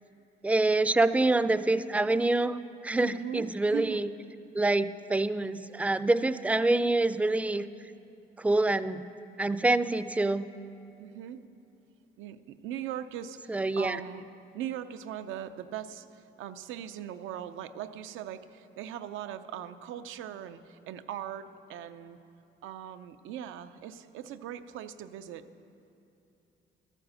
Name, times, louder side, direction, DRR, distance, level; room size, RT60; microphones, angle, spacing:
voice 1, 0.4-4.1 4.5-7.7 8.4-9.1 9.4-10.5 13.5-14.0, right 2 dB, 5° right, 14 dB, 0.3 m, -26 dB
voice 2, 3.0-4.0 11.0-11.4 12.2-14.2 14.5-22.2 22.6-25.5, right 10 dB, 90° right, 11 dB, 0.5 m, -40 dB
12.5 x 7.7 x 6.2 m, 2.7 s
cardioid pair, 90°, 20 cm